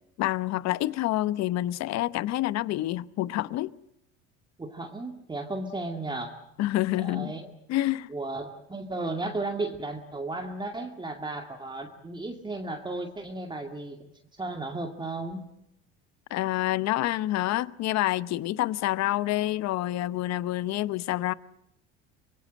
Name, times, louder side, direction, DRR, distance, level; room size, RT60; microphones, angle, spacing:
voice 1, 0.2-3.7 6.6-7.3 7.7-8.1 16.3-21.3, left 15 dB, 60° left, 0.9 m, -27 dB
voice 2, 4.6-6.4 7.0-7.5 8.1-14.0 14.4-15.4, right 2 dB, 15° right, 2.2 m, -34 dB
25.5 x 22.0 x 7.6 m
supercardioid pair, 95°, 31 cm